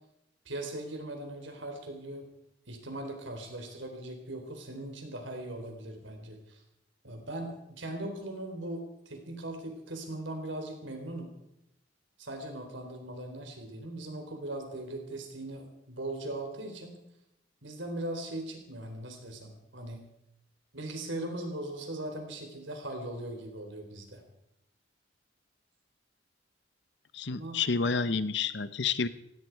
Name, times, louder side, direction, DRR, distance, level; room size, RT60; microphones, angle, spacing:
voice 1, 0.5-2.3 2.7-6.6 7.0-11.3 12.2-17.0 17.6-20.1 20.7-24.2 27.3-27.6, right 1 dB, 75° right, 4 dB, 3.9 m, -39 dB
voice 2, 27.1-29.1, left 5 dB, 60° left, 14 dB, 0.8 m, -29 dB
17.5 x 16.5 x 4.7 m, 0.83 s
head